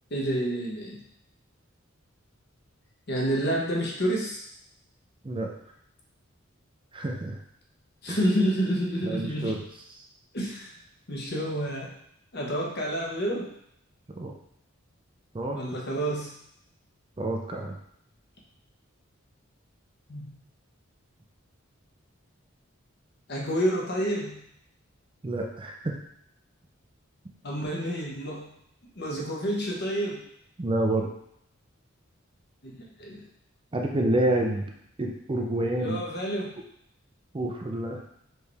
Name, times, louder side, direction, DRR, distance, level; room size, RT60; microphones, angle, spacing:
voice 1, 0.1-1.0 3.1-4.4 8.0-9.6 10.3-10.7 11.1-11.9 12.3-13.5 15.5-16.3 20.1-20.3 23.3-24.4 27.4-28.5 28.9-30.2 32.6-33.2 35.8-36.5, equal, 55° left, -2 dB, 1.0 m, -29 dB
voice 2, 6.9-7.4 8.1-8.2 9.0-9.6 10.0-10.1 14.2-14.3 15.3-15.8 17.2-17.8 25.2-26.0 30.6-31.1 33.7-34.7 35.0-36.0 37.3-38.0, right 1 dB, 25° right, 1 dB, 0.5 m, -28 dB
4.6 x 3.2 x 3.4 m, 0.73 s
head